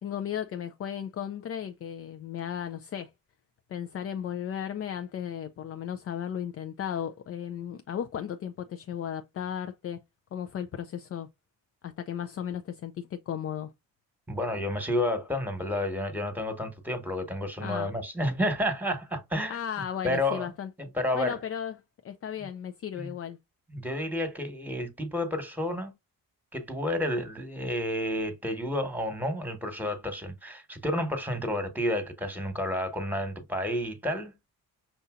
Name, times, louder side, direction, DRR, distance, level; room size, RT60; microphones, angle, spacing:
voice 1, 0.0-3.1 3.7-10.0 10.3-11.3 11.8-13.7 17.6-17.9 19.5-20.7 21.1-21.8 22.0-23.4, left 9 dB, 35° left, 0.4 m, -35 dB
voice 2, 14.3-19.6 20.0-20.5 20.8-21.4 22.9-23.1 23.7-25.9 26.5-34.3, left 1 dB, 5° right, 1.3 m, -30 dB
5.7 x 2.6 x 2.4 m
supercardioid pair, 55°, 43 cm